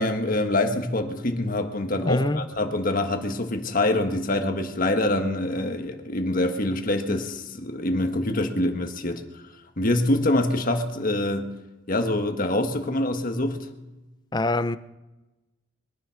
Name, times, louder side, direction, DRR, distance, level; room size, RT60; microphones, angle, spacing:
voice 1, 0.0-9.2 9.8-11.5 11.9-13.7, left 1 dB, 45° left, 1.5 m, -25 dB
voice 2, 2.0-2.4 14.3-14.8, left 2 dB, 20° left, 0.6 m, -24 dB
22.5 x 9.8 x 5.9 m
head